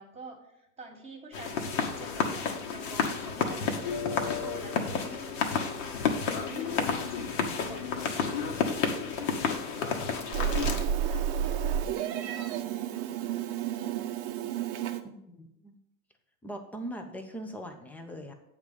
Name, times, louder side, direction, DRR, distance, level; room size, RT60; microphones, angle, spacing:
voice 1, 0.0-3.7 4.1-6.1 6.4-8.8 9.2-9.3 9.8-13.6, right 2 dB, 15° right, 1 dB, 1.3 m, -49 dB
sound 1, 1.3-10.8, left 6 dB, 60° left, 1.3 m, -31 dB
Meow, 10.3-15.0, right 9 dB, 35° right, 0.6 m, -31 dB
voice 2, 15.0-15.8 16.4-18.3, right 1 dB, 5° left, 5 dB, 0.4 m, -41 dB
8.0 x 3.7 x 6.7 m, 0.80 s
hypercardioid pair, 120°, 42 cm